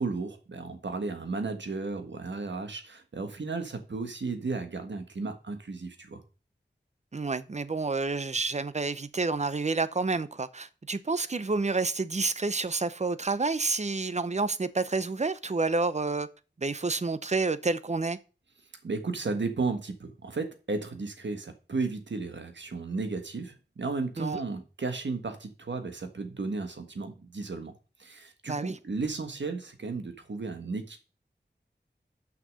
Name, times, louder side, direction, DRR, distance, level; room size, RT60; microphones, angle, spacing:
voice 1, 0.0-6.2 18.8-27.7 28.0-31.0, right 3 dB, 85° right, 1.4 m, -34 dB
voice 2, 7.1-16.3 16.6-18.2 24.2-24.4 28.5-28.8, right 3 dB, 40° right, 0.7 m, -29 dB
6.4 x 5.9 x 6.3 m
wide cardioid pair, 65°, 19 cm